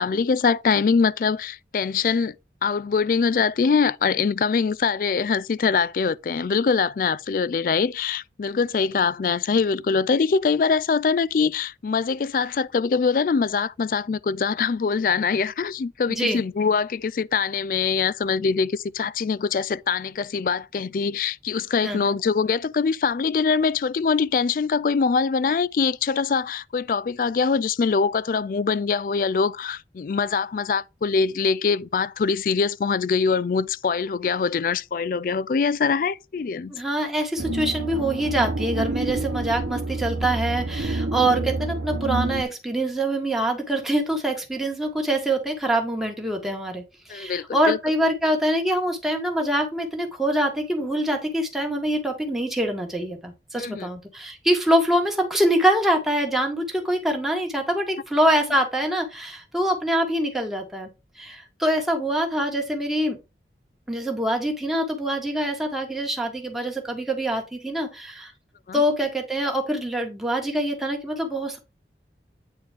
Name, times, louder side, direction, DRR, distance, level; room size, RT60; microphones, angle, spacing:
voice 1, 0.0-2.4 2.6-36.7 47.1-47.8 53.5-53.9 68.7-68.8, left 5 dB, 50° left, 0.3 m, -23 dB
voice 2, 16.1-16.4 21.8-22.1 36.7-60.9 61.2-63.2 63.9-68.3 68.7-71.6, right 1 dB, ahead, 1.5 m, -24 dB
sound 1, 37.4-42.4, right 2 dB, 85° right, 0.9 m, -28 dB
8.7 x 4.3 x 3.4 m
head